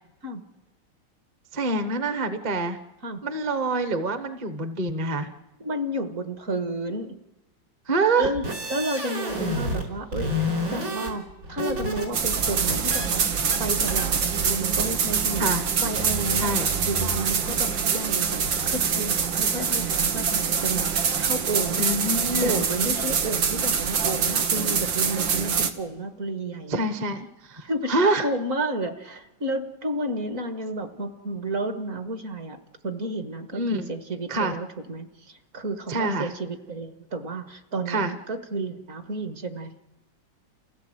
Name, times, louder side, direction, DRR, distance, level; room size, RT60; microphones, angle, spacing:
voice 1, 1.5-2.8 3.2-5.3 7.9-8.3 15.4-15.6 16.3-16.7 21.8-22.6 26.7-28.3 33.5-33.9 34.3-34.5 35.9-36.3 37.9-38.1, right 2 dB, 30° right, 9 dB, 1.0 m, -26 dB
voice 2, 5.6-7.2 8.2-13.3 13.6-15.5 15.8-21.9 22.4-26.9 27.6-32.6 32.8-39.9, right 2 dB, 50° right, 7 dB, 1.7 m, -31 dB
sound 1, 8.2-9.9 10.1-12.1 12.4-13.1 13.5-13.6 13.9-14.1, left 1 dB, 70° right, 4.6 m, -29 dB
Ama Temple Ceremony with Omikuji, 12.1-25.7, right 6 dB, 85° right, 2.0 m, -25 dB
29.5 x 16.5 x 7.9 m, 1.0 s
omnidirectional pair, 2.0 m